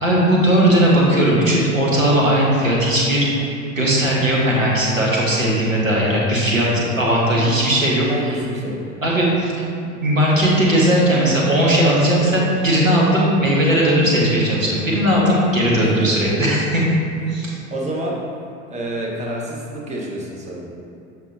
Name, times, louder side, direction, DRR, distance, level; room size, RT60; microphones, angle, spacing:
voice 1, 0.0-3.3 3.7-8.1 9.0-9.5 9.9-16.9 17.3-17.6, right 1 dB, 90° right, -4 dB, 1.2 m, -17 dB
voice 2, 8.1-8.9 15.8-16.1 17.7-18.2 18.7-20.7, right 1 dB, 20° right, -3 dB, 1.2 m, -28 dB
7.2 x 5.9 x 2.7 m, 2.6 s
figure-of-eight pair, 75°, 39 cm